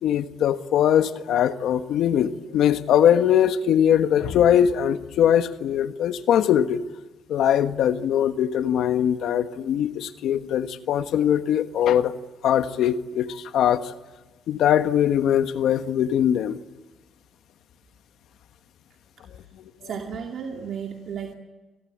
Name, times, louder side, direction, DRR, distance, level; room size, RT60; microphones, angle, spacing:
voice 1, 0.0-6.8 7.3-12.1 12.4-13.8 14.5-16.6, left 9 dB, 80° left, 10 dB, 1.4 m, -21 dB
voice 2, 19.8-21.4, right 7 dB, 65° right, 2 dB, 2.3 m, -33 dB
27.0 x 19.5 x 8.7 m, 1.2 s
cardioid pair, 90°, 0 cm